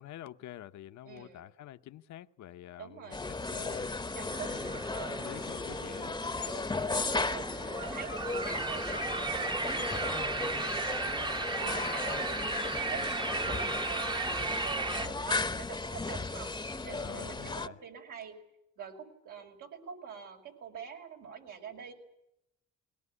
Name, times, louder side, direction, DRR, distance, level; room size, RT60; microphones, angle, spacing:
voice 1, 0.0-4.5 4.7-6.2 12.9-13.1 14.8-15.3 16.9-17.8, left 12 dB, 70° left, 0.8 m, -48 dB
voice 2, 1.0-1.4 2.8-3.3 4.1-5.3 6.4-18.4 18.8-21.9, right 7 dB, 85° right, 5.8 m, -46 dB
sound 1, 3.1-17.7, left 3 dB, 15° left, 0.8 m, -36 dB
sound 2, 4.3-15.1, right 3 dB, 15° right, 0.8 m, -35 dB
21.5 x 19.0 x 9.7 m
cardioid pair, 90°, 30 cm